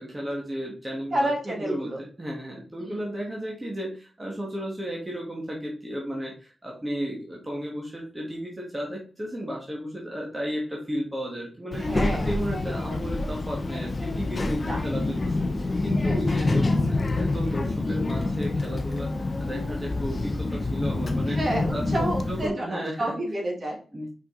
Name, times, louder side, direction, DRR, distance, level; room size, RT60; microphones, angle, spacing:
voice 1, 0.0-21.4 21.7-23.0 23.9-24.1, equal, 15° right, -2 dB, 1.5 m, -34 dB
voice 2, 1.1-2.0 2.8-2.9 11.8-12.3 12.9-13.0 14.6-14.8 16.0-16.2 21.3-23.8, right 1 dB, 35° right, 0 dB, 1.9 m, -29 dB
Child speech kid speaking, 11.7-22.5, left 2 dB, 30° left, 0.7 m, -27 dB
5.7 x 5.1 x 3.8 m, 0.39 s
wide cardioid pair, 155°, 0 cm